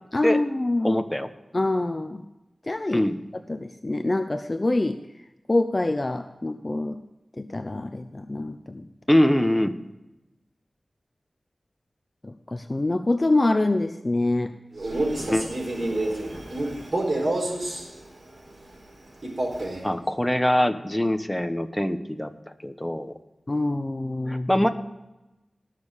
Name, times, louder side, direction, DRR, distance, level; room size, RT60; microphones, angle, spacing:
voice 1, 0.1-1.0 1.5-2.2 2.7-3.0 3.5-5.0 5.5-7.0 7.4-8.8 12.2-14.5 23.5-24.5, left 2 dB, 35° left, 8 dB, 0.7 m, -25 dB
voice 2, 0.8-1.3 2.9-3.2 9.1-9.8 15.2-15.5 15.8-15.9 19.8-22.3 22.6-23.1 24.3-24.7, left 1 dB, 10° left, 8 dB, 1.1 m, -23 dB
Male speech man speaking, 14.7-17.9 19.2-19.9, right 1 dB, 55° right, 4.1 m, -28 dB
19.5 x 6.6 x 5.1 m, 0.98 s
wide cardioid pair, 65°, 0 cm